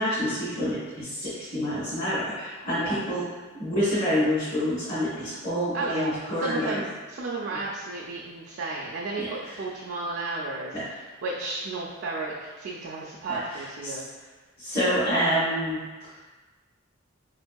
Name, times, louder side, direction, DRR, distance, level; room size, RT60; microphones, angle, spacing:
voice 1, 0.0-3.3 3.5-6.8 9.2-9.5 10.7-10.8 13.3-14.0 14.6-15.8, equal, 45° left, -12 dB, 1.0 m, -27 dB
voice 2, 5.7-6.2 6.4-10.8 11.2-14.3, right 3 dB, 50° right, -4 dB, 0.4 m, -33 dB
4.4 x 2.6 x 2.2 m, 1.3 s
head